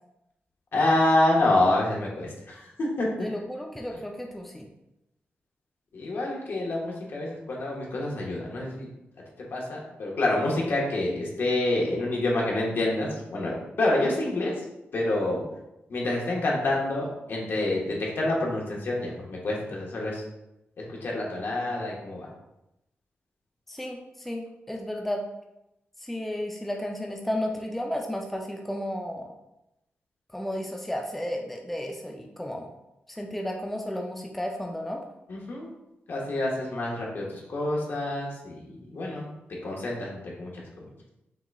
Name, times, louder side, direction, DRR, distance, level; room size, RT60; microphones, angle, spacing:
voice 1, 0.7-3.1 5.9-8.9 9.5-14.6 14.9-15.4 15.9-20.2 20.8-22.3 35.3-35.7 36.1-39.3 39.6-40.9, left 2 dB, 60° left, -2 dB, 1.3 m, -27 dB
voice 2, 3.2-4.7 23.7-25.2 26.0-29.3 30.3-32.7 33.1-35.0, left 1 dB, 5° left, 1 dB, 0.4 m, -33 dB
5.8 x 3.8 x 2.3 m, 0.90 s
wide cardioid pair, 115°, 4 cm